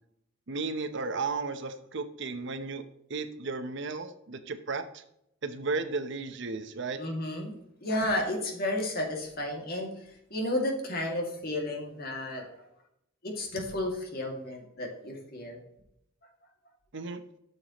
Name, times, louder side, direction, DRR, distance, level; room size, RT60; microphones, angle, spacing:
voice 1, 0.5-2.8 3.1-5.0 5.4-7.0 16.9-17.2, right 4 dB, 60° right, 9 dB, 0.8 m, -34 dB
voice 2, 7.0-9.9 10.3-12.5 13.2-15.6, left 1 dB, 50° left, 1 dB, 2.2 m, -32 dB
13.0 x 6.7 x 3.0 m, 0.77 s
head